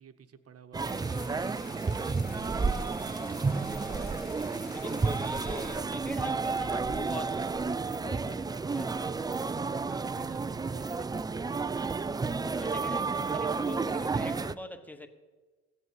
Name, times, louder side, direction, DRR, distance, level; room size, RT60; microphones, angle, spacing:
voice 1, 0.0-2.4 9.9-11.9, right 7 dB, 50° right, 1.0 m, -53 dB
sound 1, 0.7-14.5, right 4 dB, 15° right, 0.3 m, -31 dB
sound 2, 0.8-5.8, left 4 dB, 65° left, 1.7 m, -50 dB
voice 2, 3.0-4.3 4.7-9.3 12.3-15.1, left 1 dB, 5° left, 1.2 m, -43 dB
15.5 x 6.9 x 7.7 m
cardioid pair, 90°, 30 cm